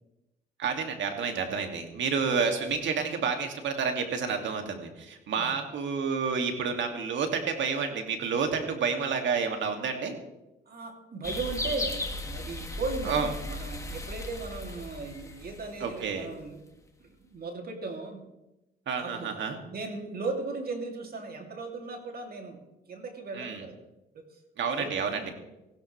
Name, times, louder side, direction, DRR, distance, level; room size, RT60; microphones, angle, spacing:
voice 1, 0.6-10.2 13.0-13.3 15.8-16.3 18.9-19.6 23.3-23.6 24.6-25.3, right 5 dB, 70° right, 4 dB, 2.5 m, -29 dB
voice 2, 10.7-16.6 17.0-18.3 19.0-19.4 19.7-23.8 24.1-24.3 24.7-25.3, right 3 dB, 50° right, 3 dB, 2.9 m, -37 dB
sound 1, 11.2-16.2, left 2 dB, 15° left, 1.8 m, -36 dB
18.0 x 16.0 x 3.4 m, 0.96 s
cardioid pair, 90°, 20 cm